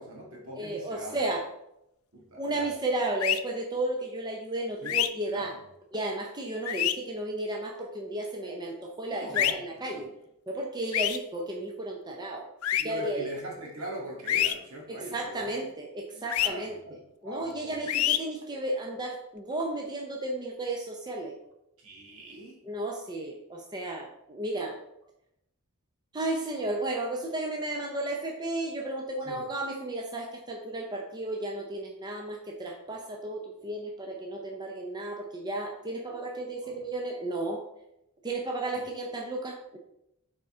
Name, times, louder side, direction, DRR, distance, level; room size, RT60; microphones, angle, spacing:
voice 1, 0.0-1.3 2.1-2.7 4.8-5.0 5.3-5.6 9.1-10.2 12.8-15.6 16.1-17.7 21.8-22.6 29.2-29.5 36.6-36.8, right 1 dB, 70° right, -2 dB, 2.0 m, -42 dB
voice 2, 0.5-1.4 2.4-5.5 5.9-10.1 10.5-12.4 12.8-13.3 14.9-16.8 17.2-21.3 22.7-24.8 26.1-37.6 38.2-39.8, right 2 dB, 20° right, 1 dB, 0.6 m, -33 dB
sound 1, 3.2-3.4 4.9-5.1 6.7-6.9 9.3-9.5 10.9-11.2 12.6-12.8 14.3-14.5 16.3-16.5 17.9-18.2, left 12 dB, 70° left, 0.4 m, -25 dB
6.8 x 4.3 x 3.7 m, 0.83 s
head